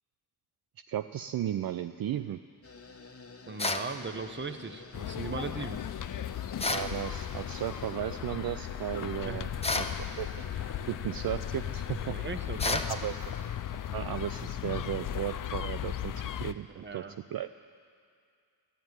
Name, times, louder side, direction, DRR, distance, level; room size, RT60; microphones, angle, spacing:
voice 1, 0.9-2.4 6.7-10.5 10.9-12.2 12.9-13.2 13.9-17.0 17.3-17.5, right 11 dB, 60° right, 11 dB, 0.5 m, -35 dB
sound 1, 2.6-12.2, left 3 dB, 35° left, 1.4 m, -49 dB
voice 2, 3.5-5.8 9.2-9.4 12.1-12.9 16.7-17.2, right 4 dB, 25° right, 9 dB, 1.0 m, -38 dB
sound 2, 3.6-3.9 6.6-6.9 9.6-10.0 12.6-12.9, left 3 dB, 15° left, 0.8 m, -30 dB
sound 3, 4.9-16.5, left 10 dB, 50° left, 0.5 m, -36 dB
13.0 x 10.5 x 9.6 m, 2.3 s
cardioid pair, 65°, 42 cm